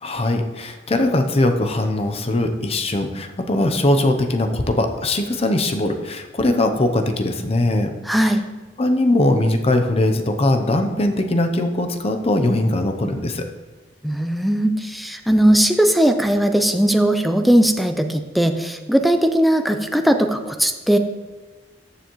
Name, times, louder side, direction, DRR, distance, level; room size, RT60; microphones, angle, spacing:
voice 1, 0.0-7.9 8.8-13.5, left 1 dB, 35° left, 6 dB, 0.7 m, -20 dB
voice 2, 8.1-8.4 14.0-21.0, right 1 dB, ahead, 6 dB, 0.4 m, -18 dB
14.0 x 6.9 x 3.1 m, 1.3 s
head